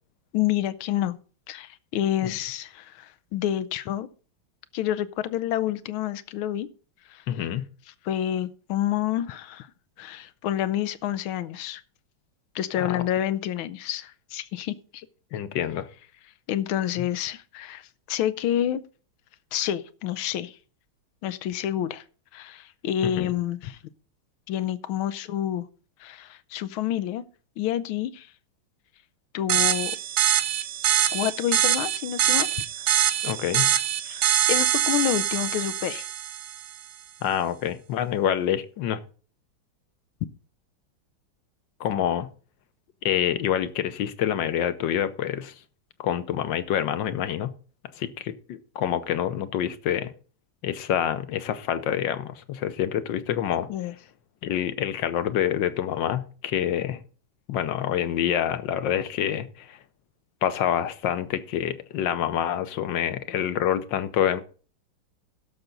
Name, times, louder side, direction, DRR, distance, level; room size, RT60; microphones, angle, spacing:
voice 1, 0.3-1.2 1.5-4.1 4.7-6.7 7.1-7.2 8.0-9.7 10.0-11.8 12.5-15.0 16.5-18.8 19.5-20.6 21.2-22.0 22.3-23.8 24.5-25.7 26.0-27.2 27.6-28.3 29.3-29.9 31.1-32.5 34.0-36.1 53.7-53.9, left 11 dB, 80° left, 1.6 m, -28 dB
voice 2, 7.3-7.7 12.8-13.0 15.3-15.9 23.0-23.3 33.2-33.7 37.2-39.0 41.8-42.3 43.0-45.5 46.0-47.5 48.0-50.1 50.6-53.7 54.4-57.0 57.5-59.8 60.4-64.4, left 10 dB, 65° left, 1.5 m, -27 dB
sound 1, 29.5-36.7, right 11 dB, 65° right, 1.3 m, -24 dB
16.5 x 6.8 x 3.9 m
omnidirectional pair, 2.3 m